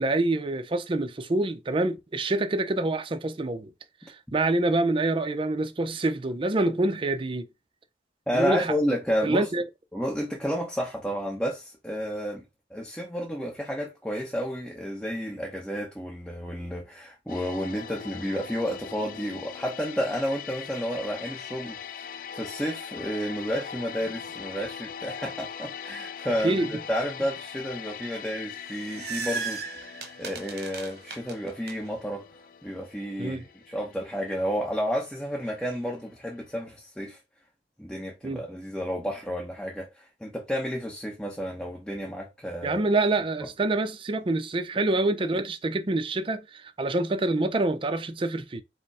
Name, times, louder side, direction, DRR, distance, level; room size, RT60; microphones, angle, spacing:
voice 1, 0.0-3.7 4.1-7.5 8.3-8.7 9.2-9.6 26.4-26.7 33.2-33.4 38.2-38.4 42.6-48.6, right 2 dB, 30° right, 0.5 m, -26 dB
voice 2, 8.3-9.5 9.9-12.4 12.7-29.6 29.9-32.3 32.6-37.2 37.8-42.8 43.4-43.5, equal, 5° left, 0.8 m, -31 dB
sound 1, 17.3-36.1 36.4-36.6, left 7 dB, 50° left, 0.4 m, -41 dB
sound 2, 28.4-31.7, right 5 dB, 60° right, 0.9 m, -36 dB
5.0 x 2.1 x 4.7 m
head